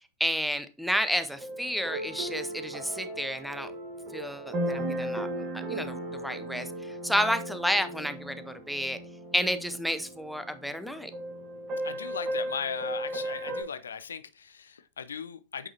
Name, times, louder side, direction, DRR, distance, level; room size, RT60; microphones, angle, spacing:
voice 1, 0.2-3.7 4.1-5.3 5.5-9.0 9.3-11.1, equal, ahead, 0.6 m, -31 dB
sound 1, 1.4-13.6, right 1 dB, 30° right, 1.7 m, -36 dB
voice 2, 11.8-15.7, left 6 dB, 70° left, 0.4 m, -37 dB
8.5 x 4.8 x 2.8 m
figure-of-eight pair, 90°, 0 cm